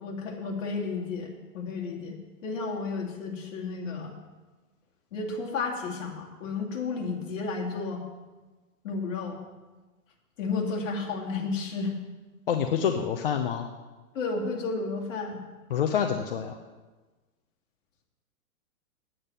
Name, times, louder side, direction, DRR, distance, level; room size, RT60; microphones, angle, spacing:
voice 1, 0.0-2.2 2.4-4.2 5.1-8.1 8.8-9.4 10.4-12.0 14.1-15.4, left 4 dB, 55° left, 0 dB, 2.6 m, -32 dB
voice 2, 12.5-13.7 15.7-16.6, left 8 dB, 40° left, 5 dB, 0.6 m, -27 dB
8.9 x 8.7 x 6.6 m, 1.2 s
hypercardioid pair, 170°, 44 cm